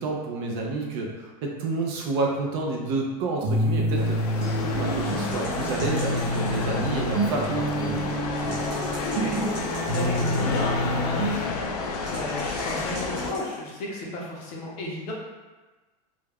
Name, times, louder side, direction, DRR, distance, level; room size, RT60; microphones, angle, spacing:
voice 1, 0.0-4.2 4.6-8.0, right 3 dB, 40° right, 0 dB, 0.4 m, -29 dB
sound 1, 3.4-11.4, equal, 85° right, 0.7 m, -27 dB
sound 2, 4.0-13.3, left 4 dB, 90° left, 0.4 m, -31 dB
sound 3, 5.0-6.9 8.3-10.6 12.0-13.6, right 1 dB, 20° right, 0.9 m, -41 dB
voice 2, 9.0-11.8 12.1-15.1, left 2 dB, 35° left, -3 dB, 0.6 m, -34 dB
2.3 x 2.1 x 3.3 m, 1.2 s
supercardioid pair, 165°, 19 cm